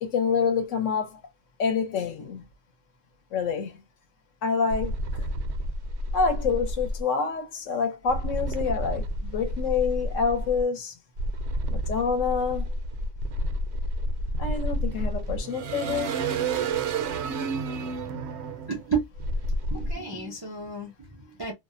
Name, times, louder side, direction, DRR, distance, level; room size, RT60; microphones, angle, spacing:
voice 1, 0.0-1.2 1.6-2.4 3.3-3.8 4.4-5.3 6.1-11.0 11.7-12.6 14.4-16.2, left 5 dB, 75° left, 1.0 m, -27 dB
sound 1, 4.7-7.0 8.1-10.6 11.2-19.9, right 1 dB, 65° right, 0.8 m, -30 dB
voice 2, 18.7-19.1 19.7-21.5, right 5 dB, 30° right, 0.4 m, -31 dB
2.5 x 2.1 x 2.4 m
omnidirectional pair, 1.4 m